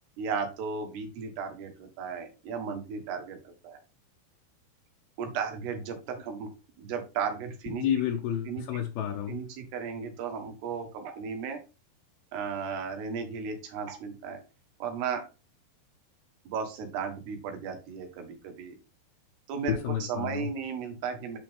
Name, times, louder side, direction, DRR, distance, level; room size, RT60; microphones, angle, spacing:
voice 1, 0.2-3.8 5.2-6.5 6.8-7.9 8.5-8.7 9.3-11.6 12.3-14.4 14.8-15.3 16.5-18.8 19.5-21.4, right 6 dB, 85° right, 5 dB, 3.5 m, -35 dB
voice 2, 7.8-9.4 19.7-20.5, left 10 dB, 75° left, 3 dB, 2.6 m, -30 dB
9.2 x 4.4 x 3.6 m, 0.31 s
omnidirectional pair, 4.6 m